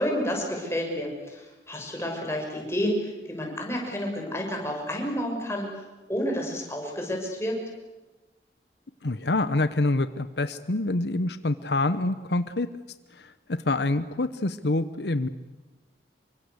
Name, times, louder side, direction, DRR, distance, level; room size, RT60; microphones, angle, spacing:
voice 1, 0.0-7.6, equal, 15° left, 1 dB, 6.4 m, -30 dB
voice 2, 9.0-12.7 13.1-15.3, left 2 dB, 75° left, 12 dB, 1.0 m, -26 dB
27.5 x 24.5 x 8.2 m, 1.1 s
head